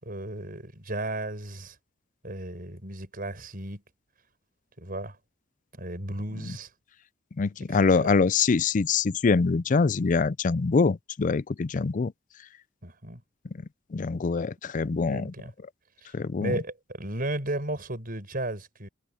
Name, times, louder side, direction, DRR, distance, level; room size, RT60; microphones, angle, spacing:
voice 1, 0.0-1.8 2.2-3.8 4.8-5.2 5.7-6.7 7.7-8.1 12.8-13.2 15.1-15.5 16.0-16.1 16.4-18.9, right 1 dB, 50° right, 6.1 m, -34 dB
voice 2, 7.4-12.1 13.9-15.3 16.1-16.6, left 4 dB, 45° left, 0.4 m, -24 dB
head